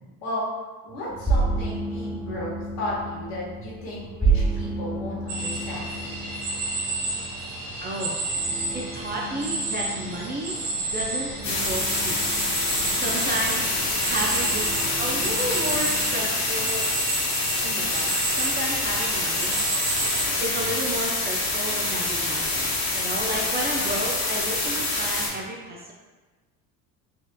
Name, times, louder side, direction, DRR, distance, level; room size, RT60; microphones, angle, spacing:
voice 1, 0.8-2.5 2.8-5.9, left 1 dB, 70° left, -5 dB, 1.4 m, -34 dB
sound 1, 1.1-16.2, right 3 dB, 5° right, 1.1 m, -31 dB
sound 2, 5.3-20.2, right 2 dB, 55° right, 1.0 m, -31 dB
voice 2, 7.8-8.2 8.7-12.5 12.8-13.7 14.1-16.9 17.6-19.6 20.4-25.9, right 1 dB, 20° right, -2 dB, 0.5 m, -32 dB
sound 3, 11.4-25.3, left 2 dB, 35° left, 1.2 m, -26 dB
4.3 x 2.4 x 2.2 m, 1.3 s
hypercardioid pair, 70°, 47 cm